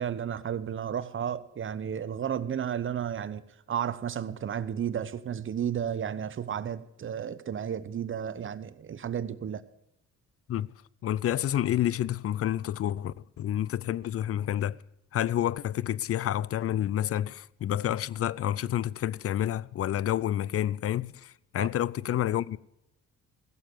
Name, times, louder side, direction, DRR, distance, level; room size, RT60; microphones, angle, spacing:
voice 1, 0.0-9.6 21.5-21.7, right 8 dB, 40° right, 0.9 m, -33 dB
voice 2, 11.0-14.8 15.1-22.6, left 11 dB, 50° left, 0.5 m, -29 dB
15.5 x 7.1 x 7.8 m
cardioid pair, 90°, 30 cm